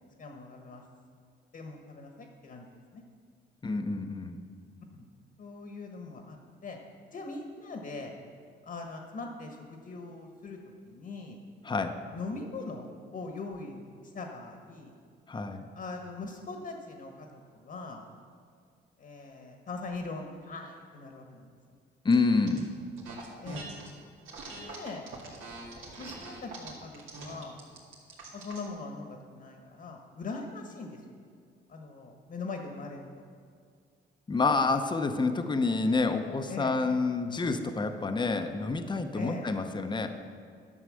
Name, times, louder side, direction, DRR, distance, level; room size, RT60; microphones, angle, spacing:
voice 1, 0.2-0.8 1.5-3.0 4.9-5.0 5.4-6.8 7.1-8.1 8.6-11.4 12.1-13.8 14.1-14.9 15.7-18.0 19.0-21.5 23.4-23.7 24.5-25.1 26.0-27.6 28.3-31.0 31.7-33.1 36.5-36.7 39.1-39.5, left 3 dB, 50° left, 3 dB, 1.4 m, -41 dB
voice 2, 3.6-4.4 11.6-12.0 15.3-15.7 22.0-22.7 34.3-40.1, left 3 dB, 25° left, 7 dB, 0.8 m, -28 dB
sound 1, 22.1-22.6 23.0-23.9 24.2-28.7, right 3 dB, 85° right, 2.4 m, -43 dB
11.5 x 6.4 x 6.3 m, 2.2 s
cardioid pair, 90°, 20 cm